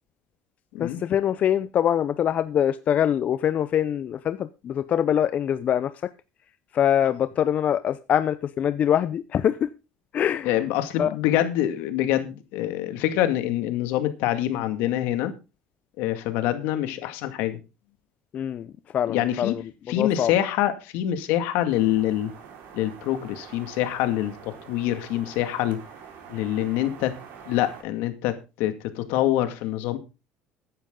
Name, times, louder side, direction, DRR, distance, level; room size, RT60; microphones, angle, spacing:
voice 1, 0.8-6.1 6.7-9.7 10.1-10.6 11.0-11.1 18.3-19.6 19.9-20.3, left 9 dB, 45° left, 0.7 m, -24 dB
voice 2, 10.4-15.3 16.0-17.6 19.1-19.6 19.9-22.3 22.7-25.8 26.3-27.1 27.5-30.0, left 12 dB, 75° left, 2.1 m, -25 dB
sound 1, 21.7-27.8, right 7 dB, 65° right, 4.7 m, -45 dB
14.5 x 10.5 x 3.8 m
supercardioid pair, 105°, 3 cm